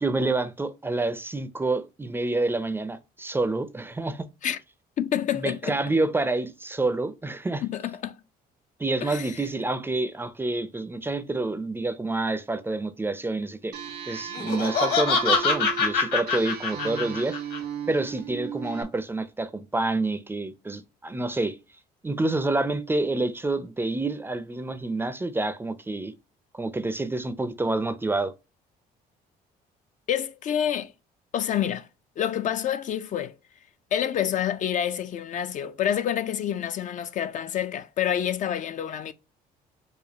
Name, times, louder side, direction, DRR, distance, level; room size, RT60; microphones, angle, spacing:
voice 1, 0.0-4.3 5.3-7.6 8.8-13.8 14.1-17.4 17.9-21.6 22.0-26.1 26.5-28.3, right 2 dB, 15° right, 0.4 m, -28 dB
voice 2, 5.0-5.8 7.7-8.2 9.0-9.4 30.1-30.9 31.3-31.9 32.2-33.3 33.9-39.1, left 10 dB, 50° left, 0.4 m, -28 dB
sound 1, 13.7-18.8, right 9 dB, 85° right, 1.4 m, -36 dB
Laughter, 14.3-17.6, left 5 dB, 65° left, 1.6 m, -24 dB
5.0 x 2.3 x 2.7 m
cardioid pair, 110°, 17 cm